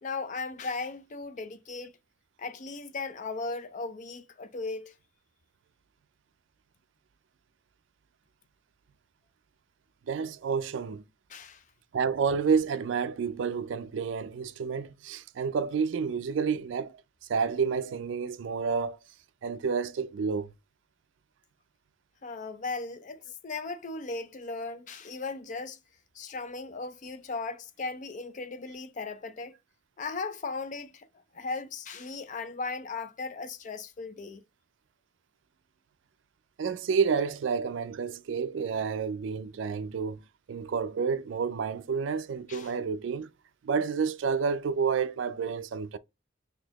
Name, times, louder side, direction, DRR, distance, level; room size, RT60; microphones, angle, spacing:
voice 1, 0.0-1.9 2.4-4.9 11.3-11.6 22.2-25.8 26.2-29.5 30.0-31.1 31.3-34.4 42.5-42.7, left 3 dB, 40° left, 0.4 m, -37 dB
voice 2, 10.1-11.0 11.9-17.0 17.3-19.0 19.4-20.5 36.6-40.2 40.5-43.3 43.6-46.0, right 6 dB, 75° right, 0.4 m, -29 dB
4.0 x 2.7 x 2.9 m
head